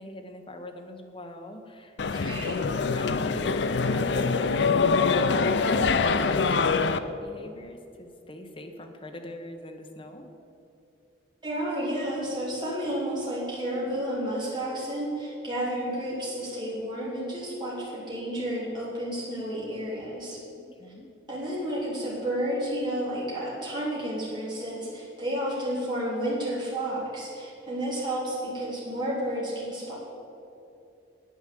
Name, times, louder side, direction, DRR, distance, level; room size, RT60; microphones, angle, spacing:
voice 1, 0.0-2.5 2.9-10.3 20.6-21.1, left 1 dB, 25° left, 4 dB, 1.0 m, -42 dB
sound 1, 2.0-7.0, left 4 dB, 65° left, 0.5 m, -24 dB
voice 2, 2.1-2.7 11.4-20.4 21.3-29.9, right 1 dB, 25° right, -7 dB, 3.3 m, -31 dB
9.3 x 8.9 x 7.7 m, 2.7 s
head